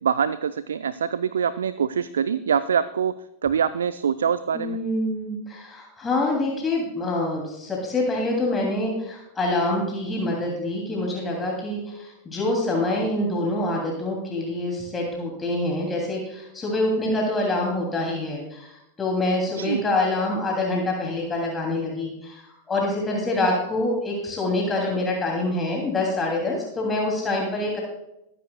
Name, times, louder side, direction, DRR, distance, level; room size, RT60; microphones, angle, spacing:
voice 1, 0.0-3.1 3.4-4.8 19.6-19.8, right 7 dB, 65° right, 15 dB, 0.4 m, -24 dB
voice 2, 4.5-22.4 22.7-27.8, left 2 dB, 15° left, -1 dB, 2.7 m, -26 dB
21.5 x 10.0 x 2.3 m, 0.85 s
figure-of-eight pair, 90°, 0 cm